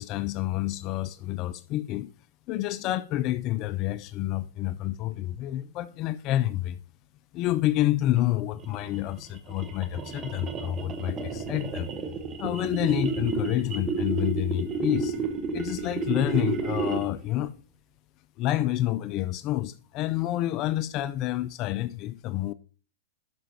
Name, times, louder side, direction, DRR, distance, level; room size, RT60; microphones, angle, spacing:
voice 1, 0.0-2.1 2.5-6.8 7.3-11.9 12.4-15.3 15.5-17.6 18.4-22.5, left 14 dB, 40° left, 0.3 m, -28 dB
sound 1, 8.6-17.3, right 4 dB, 25° right, 1.0 m, -31 dB
10.5 x 6.1 x 2.7 m
hypercardioid pair, 120°, 0 cm